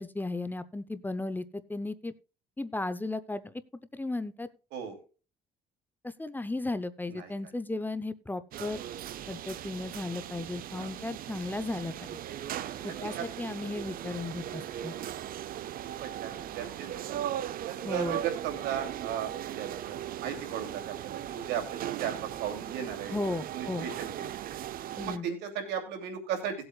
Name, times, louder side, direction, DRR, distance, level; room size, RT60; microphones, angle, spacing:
voice 1, 0.0-2.1 2.6-3.5 3.9-4.5 6.0-8.8 9.3-12.2 12.8-15.0 17.8-18.2 23.1-23.9 25.0-25.3, left 2 dB, 10° left, 12 dB, 0.8 m, -35 dB
sound 1, 8.5-25.2, right 11 dB, 60° right, 0.7 m, -38 dB
voice 2, 12.8-13.2 15.6-17.2 17.6-23.1 23.5-24.1 25.0-26.6, right 8 dB, 90° right, 5 dB, 2.9 m, -36 dB
18.0 x 8.0 x 2.4 m, 0.34 s
cardioid pair, 110°, 17 cm